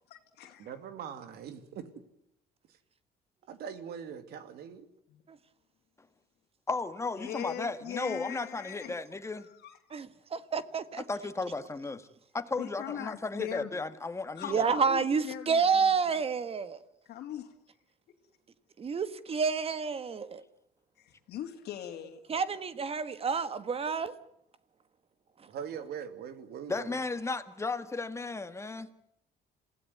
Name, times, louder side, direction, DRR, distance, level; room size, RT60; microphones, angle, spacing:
voice 1, 0.1-0.7 5.1-5.2 7.1-8.9 9.2-9.8 12.6-13.8 14.4-16.2 17.1-17.5 21.0-22.3, left 10 dB, 75° left, 2.6 m, -41 dB
voice 2, 0.6-2.0 3.5-4.9 8.7-8.8 25.5-27.0, right 8 dB, 70° right, 2.7 m, -42 dB
voice 3, 6.7-9.5 11.1-12.1 12.3-14.7 26.7-28.9, left 3 dB, 15° left, 1.8 m, -35 dB
voice 4, 9.9-11.0 14.5-16.8 18.8-20.4 22.3-24.1, right 5 dB, 35° right, 1.4 m, -29 dB
27.5 x 17.0 x 9.4 m
cardioid pair, 110°, 17 cm